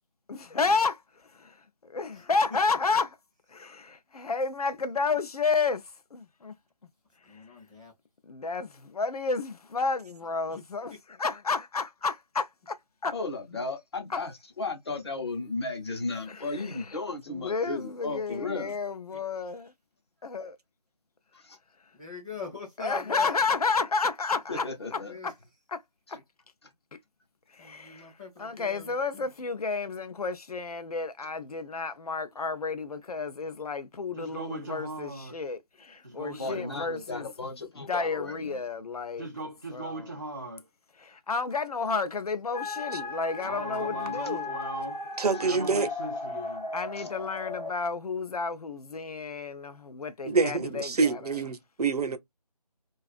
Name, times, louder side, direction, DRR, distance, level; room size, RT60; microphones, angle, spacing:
voice 1, 0.3-3.2 3.5-5.8 6.1-6.5 7.3-7.4 8.2-10.9 11.2-13.1 14.1-14.2 16.3-17.0 17.3-19.7 20.2-20.5 22.8-25.3 25.7-25.8 26.1-26.2 27.5-28.1 28.4-37.3 37.8-39.3 39.7-40.0 41.0-44.5 46.7-51.4, left 4 dB, 65° left, 0.5 m, -31 dB
voice 2, 7.2-7.9 21.9-23.4 25.1-25.3 27.6-29.3 43.3-44.7, left 6 dB, 15° left, 0.6 m, -42 dB
voice 3, 13.1-14.3 14.6-18.7 21.3-21.6 24.5-25.1 36.4-38.6 47.0-47.1, left 3 dB, 40° left, 0.9 m, -35 dB
voice 4, 34.1-35.4 36.0-36.9 39.2-40.7 43.4-45.1 45.4-46.7, right 1 dB, 35° right, 0.4 m, -39 dB
sound 1, 42.5-47.7, left 3 dB, 90° left, 1.1 m, -36 dB
voice 5, 45.2-45.9 50.3-52.2, right 4 dB, 70° right, 0.7 m, -26 dB
2.4 x 2.3 x 2.4 m
figure-of-eight pair, 165°, 21 cm